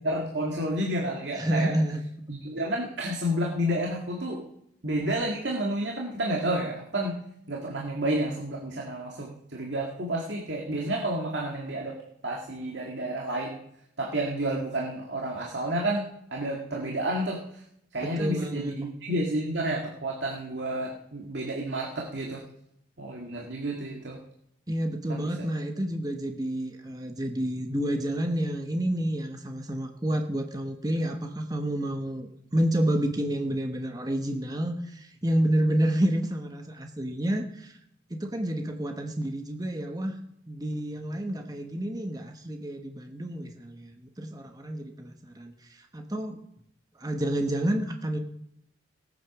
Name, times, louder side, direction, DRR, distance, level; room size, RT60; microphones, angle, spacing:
voice 1, 0.0-1.7 2.3-4.4 4.8-7.2 7.5-12.0 12.2-13.6 14.0-16.1 16.3-17.6 17.9-22.4 23.0-24.2 25.1-25.5, right 1 dB, 65° right, -1 dB, 2.0 m, -30 dB
voice 2, 1.4-2.0 18.0-18.8 24.7-37.7 38.1-40.1 40.5-46.4 47.0-48.2, right 1 dB, 20° right, 4 dB, 1.1 m, -29 dB
17.5 x 9.2 x 6.1 m, 0.75 s
head